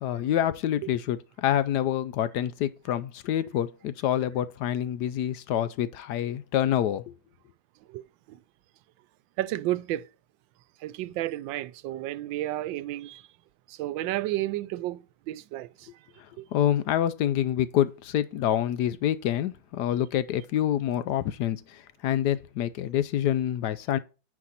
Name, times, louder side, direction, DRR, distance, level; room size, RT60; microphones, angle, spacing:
voice 1, 0.0-7.0 16.5-24.0, left 11 dB, 70° left, 1.0 m, -27 dB
voice 2, 9.4-10.1 10.8-13.2 13.7-15.9 16.4-16.5, right 15 dB, 85° right, 1.3 m, -32 dB
9.7 x 4.8 x 4.1 m
omnidirectional pair, 2.0 m